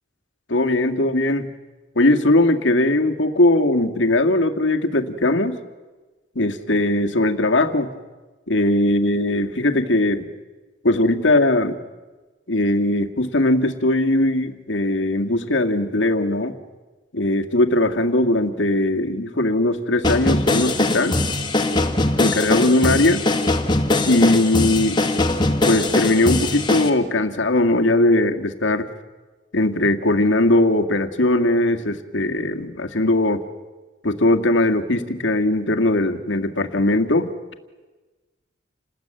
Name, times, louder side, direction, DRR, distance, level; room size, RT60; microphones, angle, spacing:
voice 1, 0.5-1.5 2.0-5.6 6.4-7.9 8.5-10.3 10.8-11.8 12.5-16.5 17.1-21.2 22.2-23.2 24.1-25.0 25.6-28.9 29.5-33.4 34.0-37.3, left 1 dB, 90° left, 6 dB, 2.0 m, -19 dB
sound 1, 20.0-26.9, left 2 dB, 25° left, 2.1 m, -21 dB
28.5 x 20.0 x 9.0 m, 1.3 s
head